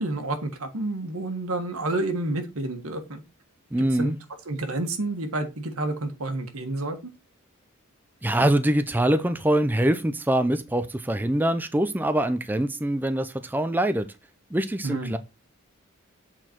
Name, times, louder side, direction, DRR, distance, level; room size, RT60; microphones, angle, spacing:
voice 1, 0.0-3.2 3.9-4.1 4.5-7.1 14.8-15.2, right 2 dB, 85° right, 1.6 m, -29 dB
voice 2, 3.7-4.2 8.2-14.1 14.5-15.2, right 1 dB, 10° right, 0.4 m, -24 dB
8.0 x 4.4 x 4.4 m
head